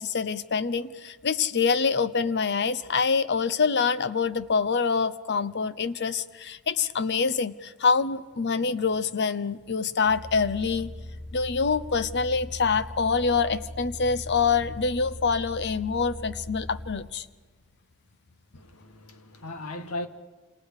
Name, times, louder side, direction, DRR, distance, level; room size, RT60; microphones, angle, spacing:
voice 1, 0.0-10.9 11.3-17.2, left 5 dB, 50° left, 0.8 m, -25 dB
sound 1, 10.0-16.9, left 1 dB, 70° left, 3.0 m, -40 dB
voice 2, 18.5-20.1, left 2 dB, 90° left, 2.0 m, -37 dB
28.0 x 27.5 x 4.9 m
head